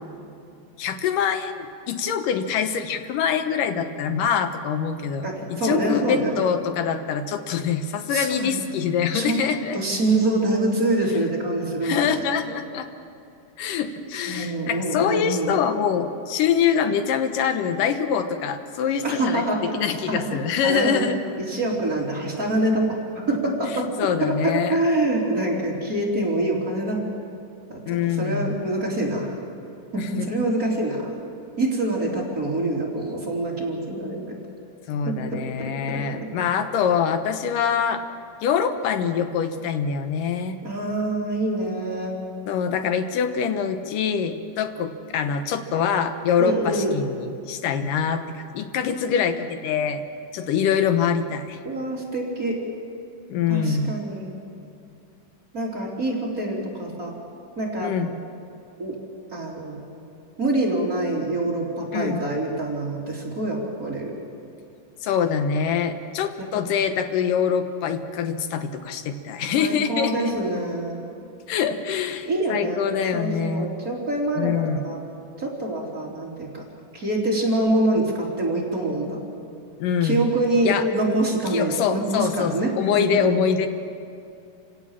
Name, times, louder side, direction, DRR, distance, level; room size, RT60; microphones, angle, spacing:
voice 1, 0.8-9.8 11.8-12.9 13.6-21.2 23.7-24.8 27.9-28.6 30.0-30.3 34.9-38.0 38.4-40.6 42.5-50.0 50.3-51.6 53.3-53.9 57.8-58.1 61.9-62.2 65.0-70.3 71.5-73.7 74.4-74.8 79.8-80.3 80.6-80.8 81.5-83.7, left 7 dB, 90° left, 8 dB, 2.8 m, -24 dB
voice 2, 5.2-6.4 8.1-8.6 9.1-9.4 9.7-12.1 14.3-15.5 19.0-19.6 20.1-21.0 21.5-23.0 23.3-27.0 27.7-29.3 29.9-31.1 31.6-34.4 35.1-36.3 40.6-42.1 46.4-46.9 51.6-52.6 53.5-54.4 55.5-57.1 57.6-57.9 58.8-59.0 59.3-59.8 60.4-64.1 69.6-71.1 72.2-72.8 73.1-75.0 75.4-76.6 76.9-79.2 80.0-82.7 82.9-83.4, right 1 dB, 25° right, -3 dB, 3.8 m, -25 dB
28.5 x 17.0 x 7.4 m, 2.6 s
omnidirectional pair, 3.7 m